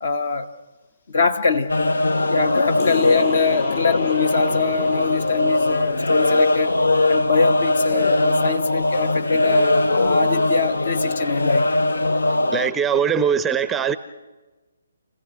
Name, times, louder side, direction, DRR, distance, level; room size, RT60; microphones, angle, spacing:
voice 1, 0.0-0.5 1.1-1.7 2.3-6.7 7.1-11.8, left 4 dB, 55° left, 1.2 m, -23 dB
sound 1, 1.7-12.7, left 2 dB, 75° left, 0.7 m, -21 dB
sound 2, 2.8-7.8, left 7 dB, 30° left, 6.1 m, -35 dB
voice 2, 12.5-14.0, right 7 dB, 10° right, 0.6 m, -21 dB
29.5 x 16.0 x 6.2 m
figure-of-eight pair, 140°, 0 cm